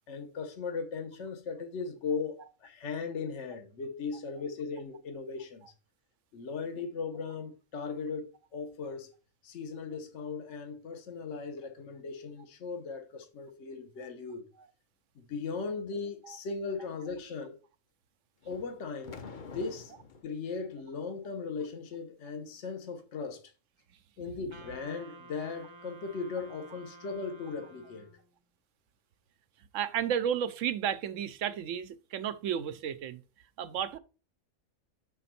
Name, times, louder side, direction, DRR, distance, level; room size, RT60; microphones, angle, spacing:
voice 1, 0.1-5.7 6.3-9.1 9.4-14.4 15.2-17.6 18.5-19.2 19.5-19.9 20.2-23.4 24.2-28.1, left 4 dB, 65° left, 1.2 m, -38 dB
sound 1, 18.4-20.3, left 5 dB, 45° left, 0.8 m, -47 dB
Wind instrument woodwind instrument, 24.5-28.4, right 3 dB, 30° right, 0.6 m, -52 dB
voice 2, 29.7-33.2 33.6-34.0, right 9 dB, 80° right, 1.0 m, -32 dB
6.0 x 4.5 x 4.2 m
omnidirectional pair, 1.3 m